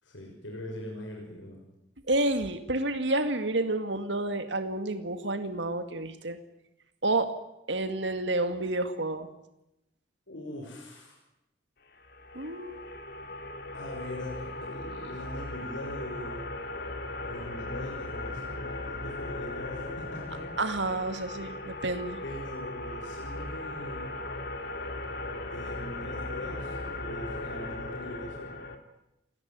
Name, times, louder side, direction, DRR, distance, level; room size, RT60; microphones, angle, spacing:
voice 1, 0.0-1.7 10.3-11.2 13.7-16.4 17.2-20.4 22.2-24.1 25.5-28.5, left 1 dB, 85° left, 0 dB, 6.4 m, -41 dB
voice 2, 2.1-6.4 7.0-7.3 7.7-9.3 12.4-12.9 20.6-22.2, right 2 dB, 70° right, 8 dB, 2.0 m, -29 dB
sound 1, 12.0-28.8, left 2 dB, 55° left, 3.0 m, -38 dB
28.5 x 19.0 x 9.4 m, 0.88 s
head